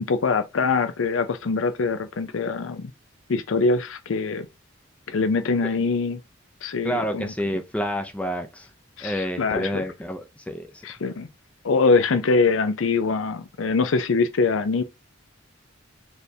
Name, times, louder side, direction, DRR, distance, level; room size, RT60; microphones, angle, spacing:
voice 1, 0.1-2.9 3.3-4.5 5.1-6.2 6.6-7.3 9.0-9.8 10.8-11.3 11.6-14.8, left 4 dB, 75° left, 0.5 m, -23 dB
voice 2, 6.8-8.7 9.0-10.9, equal, 5° left, 0.5 m, -29 dB
4.5 x 3.4 x 2.8 m
head